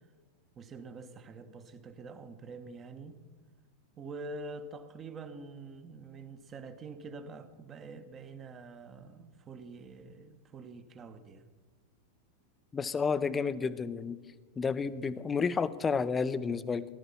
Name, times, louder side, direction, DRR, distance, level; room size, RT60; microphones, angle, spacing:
voice 1, 0.5-3.2 4.0-11.5, right 3 dB, 25° right, 10 dB, 1.2 m, -46 dB
voice 2, 12.7-14.2 14.6-16.9, left 5 dB, 20° left, 14 dB, 0.7 m, -31 dB
18.0 x 12.0 x 5.7 m, 1.4 s
figure-of-eight pair, 90°, 0 cm